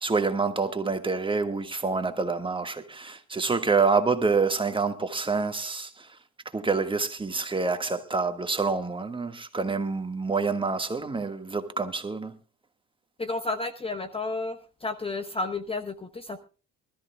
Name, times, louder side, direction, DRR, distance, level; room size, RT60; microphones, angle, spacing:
voice 1, 0.0-6.1 6.5-12.4, right 4 dB, 15° right, 1.6 m, -27 dB
voice 2, 13.2-16.4, left 3 dB, 15° left, 1.0 m, -32 dB
24.5 x 13.5 x 2.2 m
cardioid pair, 110°, 33 cm